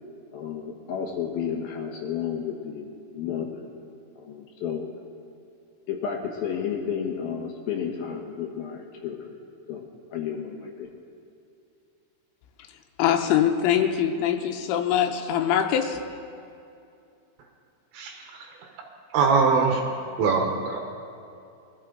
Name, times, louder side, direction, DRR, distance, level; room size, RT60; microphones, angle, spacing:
voice 1, 0.3-3.6 4.2-4.9 5.9-9.3 9.7-9.9 10.1-10.9, left 7 dB, 70° left, 1 dB, 2.6 m, -32 dB
voice 2, 13.0-16.0, left 9 dB, 90° left, 4 dB, 3.3 m, -23 dB
voice 3, 17.9-18.7 19.1-19.9 20.2-20.8, right 4 dB, 75° right, 2 dB, 3.1 m, -23 dB
22.5 x 13.0 x 3.9 m, 2.6 s
omnidirectional pair, 5.5 m